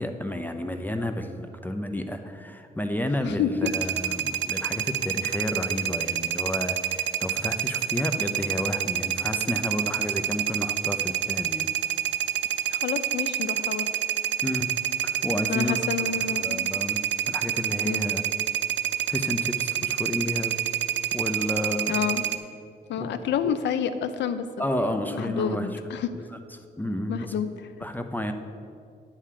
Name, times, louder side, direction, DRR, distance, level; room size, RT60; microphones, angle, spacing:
voice 1, 0.0-11.7 14.4-14.7 15.0-15.8 16.4-17.0 17.3-18.2 19.1-20.6 21.1-22.0 23.0-23.1 23.4-23.5 24.6-25.7 26.1-26.3 26.8-27.3 27.8-28.3, left 1 dB, 10° left, 6 dB, 0.6 m, -31 dB
voice 2, 3.2-3.7 12.7-13.9 15.5-16.8 17.8-18.0 21.9-22.3 22.9-24.5 24.8-26.1 27.1-27.7, left 8 dB, 85° left, 11 dB, 0.6 m, -29 dB
sound 1, 3.6-22.4, right 11 dB, 85° right, 0.5 m, -28 dB
9.8 x 4.9 x 7.5 m, 2.3 s
cardioid pair, 105°, 18 cm